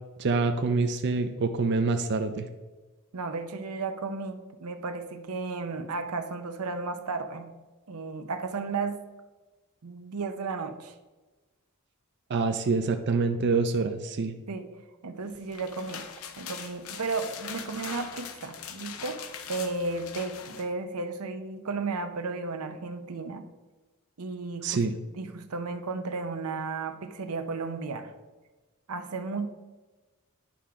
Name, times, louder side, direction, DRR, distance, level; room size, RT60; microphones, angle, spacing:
voice 1, 0.2-2.5 12.3-14.3 24.6-24.9, right 4 dB, 50° right, 7 dB, 0.5 m, -26 dB
voice 2, 3.1-7.5 7.9-9.0 9.8-10.9 14.5-14.7 15.0-16.1 16.4-23.5 24.2-24.8 25.2-28.1 28.9-29.5, right 3 dB, 90° right, 8 dB, 0.7 m, -34 dB
sound 1, 15.3-20.7, left 7 dB, 70° left, 0.7 m, -41 dB
10.0 x 3.7 x 5.7 m, 1.2 s
head